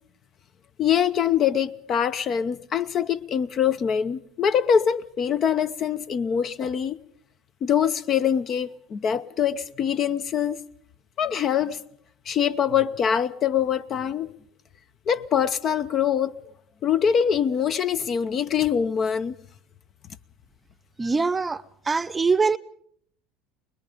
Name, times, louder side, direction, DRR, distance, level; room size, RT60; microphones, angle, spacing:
voice 1, 0.8-7.0 7.6-10.6 11.2-11.8 12.3-14.3 15.1-16.3 16.8-19.3, left 8 dB, 45° left, 0.8 m, -24 dB
voice 2, 21.0-22.6, right 4 dB, 20° right, 0.7 m, -23 dB
24.0 x 21.0 x 5.1 m
hypercardioid pair, 80°, 0 cm